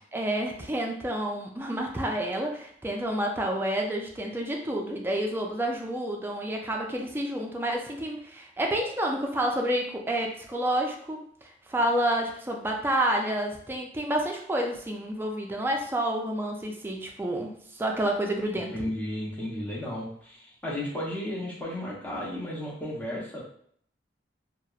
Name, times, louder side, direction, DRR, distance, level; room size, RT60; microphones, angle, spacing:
voice 1, 0.1-11.2 11.7-18.8, right 1 dB, 15° right, 1 dB, 0.3 m, -29 dB
voice 2, 18.5-23.4, left 1 dB, 10° left, -6 dB, 0.7 m, -34 dB
2.8 x 2.0 x 2.3 m, 0.63 s
head